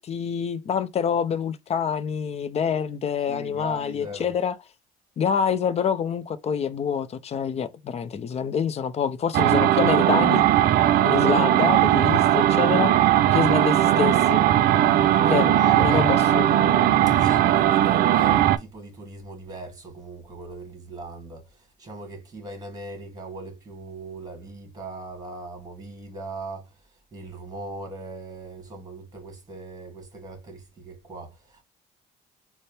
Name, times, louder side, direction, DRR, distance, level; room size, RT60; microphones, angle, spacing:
voice 1, 0.0-4.6 5.2-10.4 11.0-12.9 13.3-14.4 15.3-16.4, left 7 dB, 40° left, 0.5 m, -26 dB
voice 2, 3.3-4.3 14.7-16.1 17.1-26.8 27.1-31.6, right 2 dB, 20° right, 2.0 m, -39 dB
sound 1, 9.3-18.6, right 12 dB, 60° right, 0.4 m, -19 dB
sound 2, 12.7-18.2, left 7 dB, 80° left, 0.7 m, -40 dB
4.2 x 2.1 x 3.3 m
cardioid pair, 110°, 17 cm